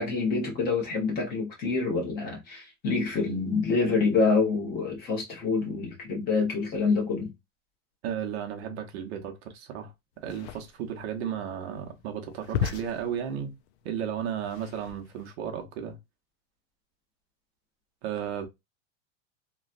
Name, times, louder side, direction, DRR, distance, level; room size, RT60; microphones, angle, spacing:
voice 1, 0.0-7.3, left 4 dB, 25° left, 1.2 m, -27 dB
voice 2, 8.0-9.9 10.2-13.5 13.8-16.0 18.0-18.5, right 8 dB, 55° right, 0.9 m, -34 dB
sound 1, 10.2-15.3, left 8 dB, 60° left, 0.5 m, -36 dB
3.0 x 2.4 x 2.5 m
supercardioid pair, 155°, 38 cm